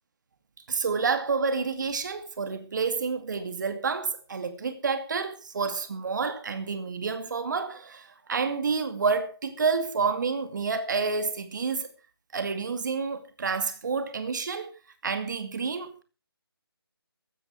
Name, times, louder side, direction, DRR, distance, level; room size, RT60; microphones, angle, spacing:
voice 1, 0.7-11.9 12.3-14.7 15.0-16.0, right 5 dB, 45° right, 2.4 m, -29 dB
15.0 x 13.5 x 4.7 m
figure-of-eight pair, 165°, 13 cm